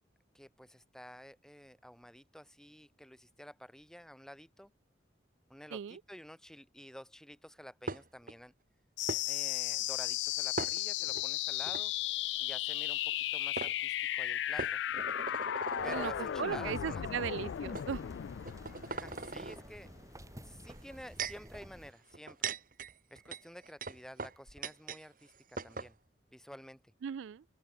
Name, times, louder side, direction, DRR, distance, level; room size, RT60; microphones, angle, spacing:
voice 1, 0.3-4.7 5.5-8.5 9.3-11.9 12.4-14.8 15.8-17.0 18.9-19.9 20.4-22.5 23.1-26.0 26.3-26.8, equal, 5° left, 4.1 m, -51 dB
sound 1, 7.9-8.3 9.1-9.2 10.6-11.2 11.7-11.8 13.1-13.2 13.6-13.7 14.6-16.2 17.0-17.1 17.7-17.9 18.4-19.6 20.7-21.5 22.1-25.0 25.3-25.4 25.6-25.9, right 4 dB, 45° right, 1.7 m, -40 dB
sound 2, 9.0-20.0, left 12 dB, 75° left, 0.3 m, -35 dB
voice 2, 15.7-18.0 27.0-27.4, right 8 dB, 90° right, 0.3 m, -38 dB
sound 3, 15.8-21.9, equal, 15° right, 5.9 m, -52 dB
open air
head